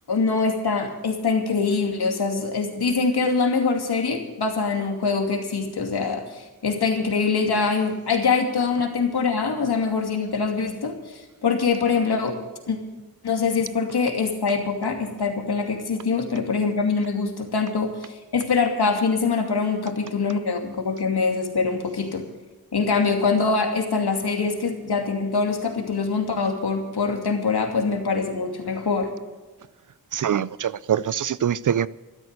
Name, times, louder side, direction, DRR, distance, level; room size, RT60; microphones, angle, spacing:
voice 1, 0.1-12.4 12.7-12.8 13.2-22.2 22.7-29.1, left 4 dB, 75° left, 2.6 m, -24 dB
voice 2, 30.1-31.9, right 9 dB, 55° right, 0.4 m, -24 dB
14.0 x 12.5 x 6.7 m
wide cardioid pair, 160°, 39 cm